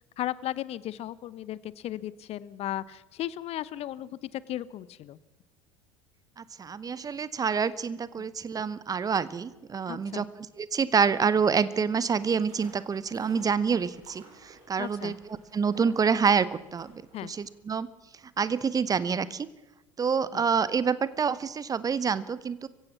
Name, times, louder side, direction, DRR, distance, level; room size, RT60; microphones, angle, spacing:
voice 1, 0.2-5.2 9.9-10.3 14.8-15.2 17.1-17.3 20.3-20.4, left 13 dB, 40° left, 19 dB, 0.8 m, -36 dB
voice 2, 6.4-10.3 10.6-16.9 17.2-17.9 18.4-19.5 20.0-22.7, right 6 dB, 20° right, 17 dB, 0.9 m, -27 dB
sound 1, 12.0-17.5, right 3 dB, 45° right, 7.4 m, -56 dB
25.0 x 15.5 x 7.3 m, 1.1 s
figure-of-eight pair, 70°, 16 cm